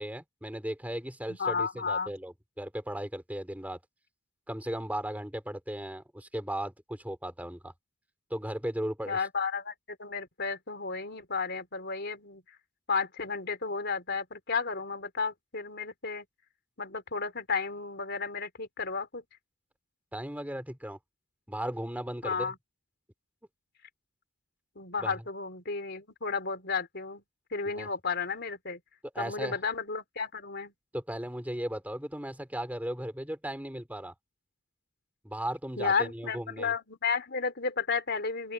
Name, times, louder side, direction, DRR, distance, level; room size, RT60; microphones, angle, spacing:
voice 1, 0.0-3.8 4.5-7.7 8.3-9.2 20.1-21.0 21.5-22.5 25.0-25.2 27.8-27.9 29.1-29.6 30.9-34.1 35.2-36.7, right 1 dB, 5° right, 3.4 m, -36 dB
voice 2, 1.4-2.1 9.1-12.6 12.9-16.2 16.8-19.2 22.2-22.6 24.8-27.2 27.5-28.8 29.2-30.7 35.8-38.5, left 5 dB, 50° left, 4.1 m, -33 dB
open air
head